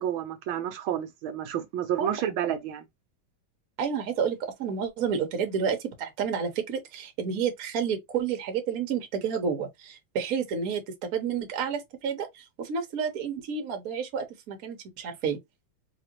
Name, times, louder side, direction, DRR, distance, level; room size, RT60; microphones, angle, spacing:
voice 1, 0.0-2.9, right 10 dB, 80° right, 1.5 m, -30 dB
voice 2, 3.8-15.4, right 6 dB, 55° right, 1.2 m, -30 dB
4.1 x 3.0 x 2.9 m
omnidirectional pair, 2.3 m